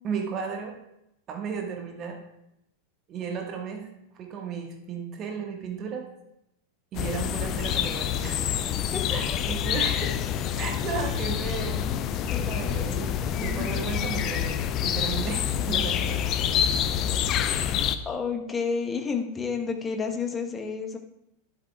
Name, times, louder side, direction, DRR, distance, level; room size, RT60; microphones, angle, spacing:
voice 1, 0.0-0.7 1.3-2.2 3.1-3.9 4.1-6.1 6.9-8.4 9.1-10.1 10.6-11.9 12.2-13.1 13.4-16.2, right 6 dB, 30° right, 2 dB, 1.4 m, -34 dB
sound 1, 6.9-18.0, left 9 dB, 35° left, 0.5 m, -27 dB
voice 2, 8.9-9.4 11.9-12.8 13.2-13.8 18.0-21.0, left 5 dB, 15° left, 4 dB, 1.1 m, -31 dB
12.0 x 11.5 x 2.3 m, 0.82 s
figure-of-eight pair, 90°, 0 cm